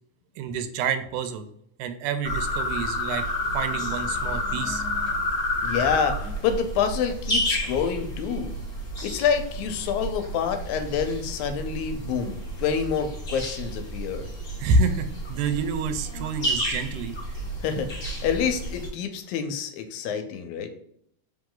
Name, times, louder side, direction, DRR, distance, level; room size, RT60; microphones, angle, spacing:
voice 1, 0.4-1.5 1.8-3.3 3.5-4.8 14.6-17.2, right 4 dB, 85° right, 10 dB, 2.0 m, -27 dB
sound 1, 2.2-18.9, left 1 dB, 40° left, 0.8 m, -30 dB
voice 2, 5.6-8.5 9.0-14.3 17.6-20.7, left 7 dB, 80° left, 8 dB, 1.9 m, -27 dB
4.7 x 3.0 x 3.7 m, 0.70 s
omnidirectional pair, 3.5 m